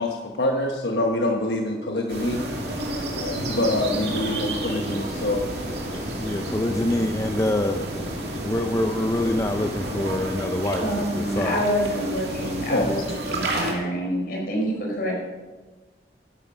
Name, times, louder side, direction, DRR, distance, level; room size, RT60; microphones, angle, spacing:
voice 1, 0.0-2.6 3.2-6.1 12.4-13.0, left 1 dB, 80° left, 2 dB, 1.1 m, -26 dB
sound 1, 2.1-13.7, right 1 dB, 65° right, 2.7 m, -32 dB
sound 2, 2.5-10.2, equal, 20° right, 4.5 m, -35 dB
voice 2, 6.2-7.8 8.4-11.6, left 1 dB, 20° left, 5 dB, 0.5 m, -25 dB
voice 3, 10.8-13.0 13.3-15.1, equal, 55° left, -1 dB, 4.5 m, -26 dB
13.0 x 11.0 x 5.2 m, 1.3 s
head